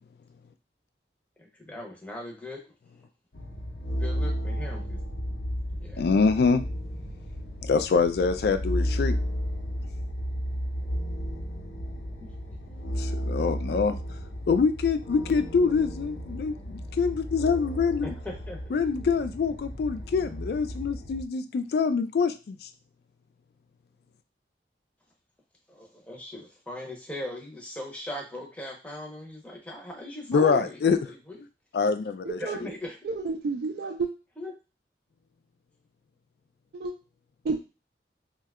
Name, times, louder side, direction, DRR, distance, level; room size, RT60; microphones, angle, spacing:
voice 1, 1.4-2.7 4.0-5.0 5.7-6.1 18.0-18.8 25.7-31.4 32.4-33.0 34.4-34.5, left 1 dB, 10° left, -1 dB, 0.6 m, -39 dB
sound 1, 3.3-21.2, equal, 90° left, 0.8 m, -33 dB
voice 2, 6.0-6.6 7.6-9.2 13.0-14.0 14.5-18.1 18.7-22.7 30.3-31.0 31.7-32.7, left 5 dB, 65° left, 10 dB, 0.3 m, -25 dB
voice 3, 32.2-32.6 33.0-34.1 36.7-36.9 37.4-37.6, right 4 dB, 65° right, 3 dB, 0.3 m, -30 dB
2.7 x 2.2 x 3.5 m, 0.30 s
head